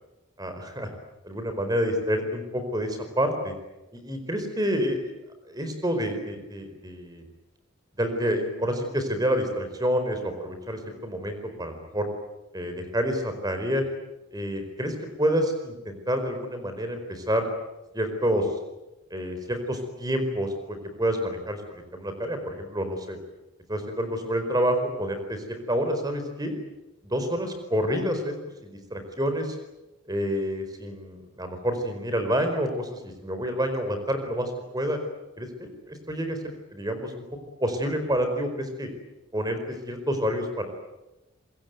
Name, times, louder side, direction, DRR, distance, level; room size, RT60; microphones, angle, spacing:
voice 1, 0.4-0.9 1.2-3.5 3.9-5.1 5.5-7.2 8.0-12.1 12.5-13.8 14.3-17.4 17.9-18.5 19.1-23.2 23.7-26.6 27.0-28.3 28.6-29.6 30.1-35.0 35.4-37.2 37.6-38.9 39.3-40.7, equal, 20° right, 7 dB, 4.7 m, -28 dB
26.0 x 22.5 x 9.3 m, 0.99 s
head